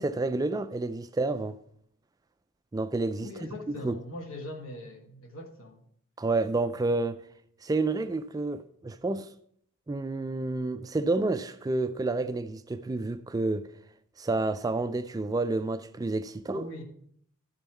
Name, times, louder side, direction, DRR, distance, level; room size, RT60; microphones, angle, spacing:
voice 1, 0.0-1.6 2.7-3.3 3.7-4.0 6.2-7.2 7.6-9.3 9.9-13.7 14.2-16.7, right 2 dB, 15° right, 0.3 m, -29 dB
voice 2, 3.2-5.8 16.5-16.8, left 1 dB, 60° left, 1.3 m, -41 dB
12.5 x 5.3 x 4.5 m
head